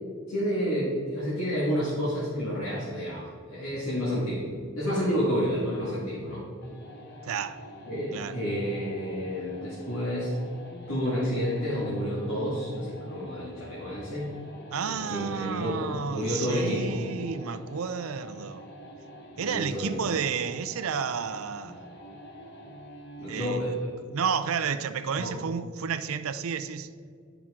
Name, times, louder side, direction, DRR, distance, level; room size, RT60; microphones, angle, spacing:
voice 1, 0.3-3.3 3.5-4.4 4.7-6.5 7.9-10.4 10.9-14.3 14.9-17.0 19.4-20.0 23.2-23.7 25.2-25.3, equal, 90° left, 1.8 m, -30 dB
sound 1, 6.6-23.6, equal, 55° left, 1.0 m, -46 dB
voice 2, 7.2-7.6 8.1-8.4 14.7-18.6 19.4-21.8 23.3-23.6 24.1-26.9, right 6 dB, 85° right, 0.4 m, -31 dB
10.5 x 5.8 x 3.7 m
head